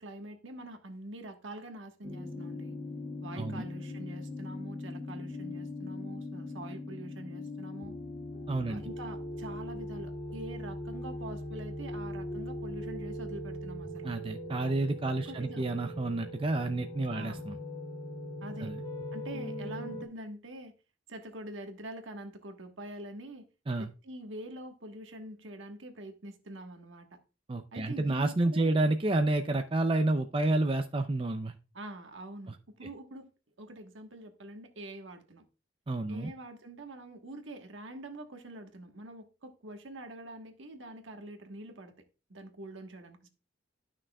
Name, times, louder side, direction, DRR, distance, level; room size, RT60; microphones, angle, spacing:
voice 1, 0.0-2.7 3.2-8.0 8.7-14.1 15.3-15.6 17.1-17.4 18.4-18.7 19.1-20.7 21.1-23.5 23.8-27.2 27.7-28.7 31.7-33.3 33.6-35.4 36.1-41.9 42.3-43.3, right 1 dB, 75° right, 1.3 m, -45 dB
sound 1, 2.0-20.1, left 1 dB, 20° left, 2.3 m, -40 dB
voice 2, 8.5-8.8 14.0-17.6 18.6-18.8 23.7-23.9 27.5-31.5 32.5-32.6 35.9-36.3, right 2 dB, 25° right, 0.4 m, -29 dB
12.0 x 6.0 x 2.3 m
head